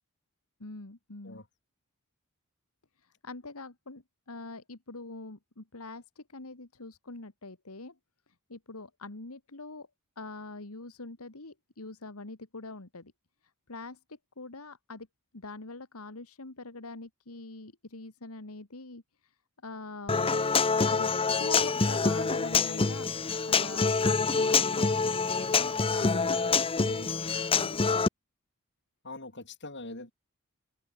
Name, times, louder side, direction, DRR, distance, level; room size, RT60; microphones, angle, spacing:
voice 1, 0.6-1.4 3.0-8.0 8.3-9.9 10.2-13.1 13.4-15.1 15.3-20.4 20.9-23.1 23.5-27.8, left 3 dB, 75° left, 2.0 m, -44 dB
Human voice / Acoustic guitar, 20.1-28.1, left 4 dB, 25° left, 0.7 m, -26 dB
voice 2, 29.0-30.1, left 2 dB, 55° left, 7.6 m, -42 dB
head